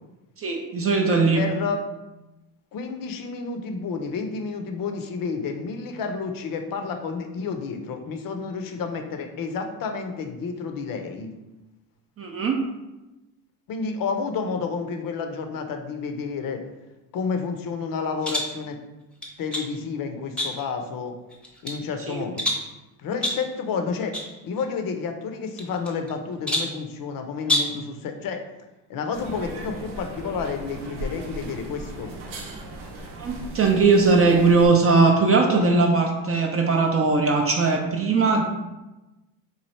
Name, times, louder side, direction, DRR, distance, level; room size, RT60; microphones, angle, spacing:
voice 1, 0.4-1.4 12.2-12.6 22.1-22.2 33.2-38.4, right 4 dB, 35° right, 2 dB, 0.5 m, -19 dB
voice 2, 1.3-1.8 2.7-11.3 13.7-16.6 17.1-18.8 19.4-21.2 21.6-22.4 23.0-24.2 24.4-28.4 28.9-32.1, left 5 dB, 50° left, 6 dB, 0.6 m, -30 dB
sound 1, 18.2-18.6 19.2-19.7 20.4-20.8 21.3-21.8 22.4-22.7 23.2-23.5 24.1-24.3 24.6-24.7 25.6-26.1 26.5-26.8 27.4-27.8, left 1 dB, 5° left, 0.7 m, -27 dB
sound 2, 29.1-34.7, right 1 dB, 85° right, 0.8 m, -37 dB
3.1 x 2.3 x 4.1 m, 1.0 s
supercardioid pair, 90°, 42 cm